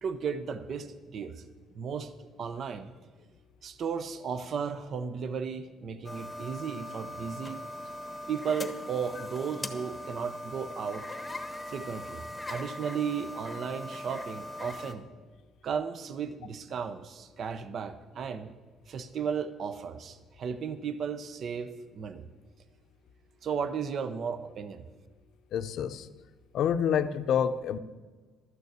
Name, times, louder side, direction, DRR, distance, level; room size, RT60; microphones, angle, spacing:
voice 1, 0.0-1.4 1.7-2.1 2.4-2.9 3.6-7.6 8.3-11.0 11.7-12.2 12.5-15.1 15.6-18.5 18.9-22.3 23.4-24.8, right 6 dB, 50° right, 11 dB, 0.7 m, -35 dB
sound 1, 6.0-14.9, left 1 dB, 15° left, 1.0 m, -40 dB
voice 2, 25.5-26.1 26.5-27.8, left 8 dB, 65° left, 11 dB, 0.6 m, -27 dB
12.5 x 6.8 x 8.2 m, 1.4 s
cardioid pair, 135°, 0 cm